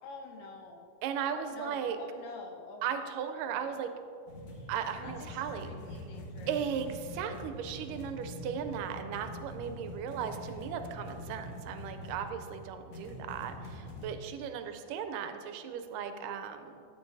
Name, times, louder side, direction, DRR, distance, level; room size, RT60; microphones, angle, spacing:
voice 1, 0.0-1.0 1.3-3.1 3.4-3.8 5.0-6.6, left 4 dB, 80° left, 2 dB, 2.7 m, -48 dB
voice 2, 1.0-2.0 2.8-3.9 4.7-5.7 6.5-16.9, right 8 dB, 85° right, 8 dB, 2.2 m, -36 dB
sound 1, 4.3-14.1, left 1 dB, 55° left, 1.4 m, -44 dB
13.5 x 9.3 x 2.6 m, 2.5 s
omnidirectional pair, 3.9 m